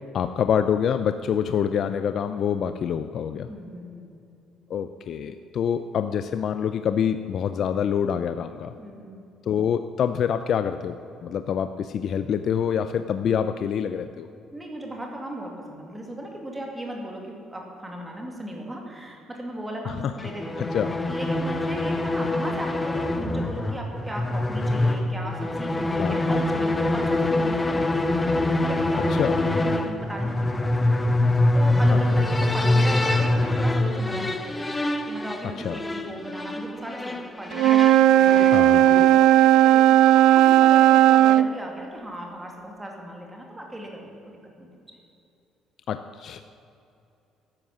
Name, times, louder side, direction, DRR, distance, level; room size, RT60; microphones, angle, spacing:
voice 1, 0.1-3.5 4.7-8.7 9.5-11.0 11.2-14.3 19.8-20.1 20.6-21.0 26.0-26.4 29.1-29.4 31.9-32.0 34.1-34.3 35.6-35.8 38.5-38.8 45.9-46.4, left 8 dB, 45° left, 10 dB, 0.5 m, -26 dB
voice 2, 3.5-4.1 8.8-9.2 14.5-20.8 21.1-28.2 28.6-30.3 30.6-31.0 31.5-34.7 35.1-37.7 38.3-45.0, right 1 dB, 10° right, 1 dB, 2.3 m, -37 dB
sound 1, 20.2-39.2, left 2 dB, 10° left, 0.8 m, -25 dB
Wind instrument woodwind instrument, 37.5-41.5, right 12 dB, 75° right, 0.4 m, -16 dB
13.0 x 10.5 x 7.5 m, 2.7 s
cardioid pair, 155°, 0 cm